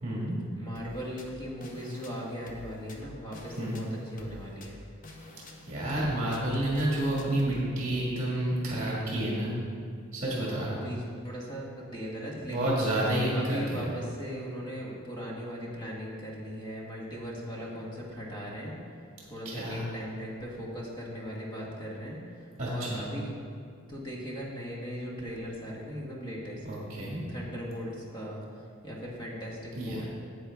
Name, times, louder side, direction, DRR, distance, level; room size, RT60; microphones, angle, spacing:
voice 1, 0.0-0.4 3.6-3.8 5.7-9.5 10.1-10.8 12.5-13.8 19.4-19.8 22.6-23.1 26.6-27.2 29.7-30.0, right 1 dB, 35° right, -5 dB, 1.7 m, -29 dB
voice 2, 0.5-4.8 10.4-12.8 13.3-18.7 19.3-22.2 22.7-23.3 23.9-26.6 27.3-30.0, equal, 20° left, -4 dB, 1.5 m, -38 dB
sound 1, 0.8-7.6, left 1 dB, 40° left, 0.8 m, -49 dB
9.8 x 7.7 x 3.5 m, 2.3 s
head